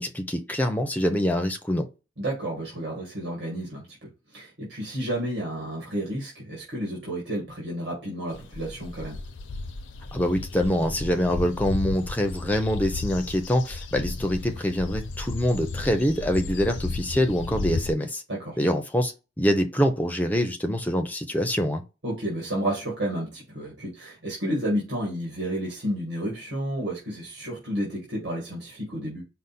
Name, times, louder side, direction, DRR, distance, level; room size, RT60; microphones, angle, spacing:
voice 1, 0.0-1.9 10.1-18.2 18.6-19.1 19.4-21.8, equal, 10° left, 0.6 m, -25 dB
voice 2, 2.2-4.0 4.3-9.2 18.3-18.6 22.0-29.2, right 1 dB, 65° right, 1.8 m, -31 dB
sound 1, 8.3-17.9, left 3 dB, 85° left, 0.6 m, -34 dB
5.1 x 2.1 x 4.2 m
head